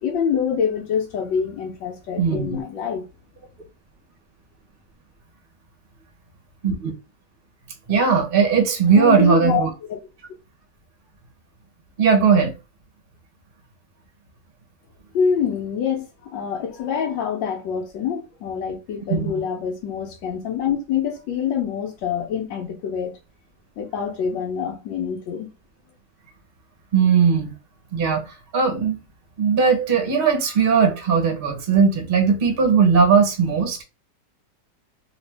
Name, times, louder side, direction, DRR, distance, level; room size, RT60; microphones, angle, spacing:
voice 1, 0.0-3.0 8.9-9.6 15.1-23.1 23.8-25.5, left 7 dB, 85° left, 1.4 m, -25 dB
voice 2, 2.2-2.6 6.6-6.9 7.9-9.7 12.0-12.5 19.1-19.3 26.9-27.5 27.9-28.2 28.5-29.0 29.4-33.8, right 6 dB, 40° right, 0.9 m, -18 dB
3.3 x 2.7 x 3.3 m
omnidirectional pair, 2.0 m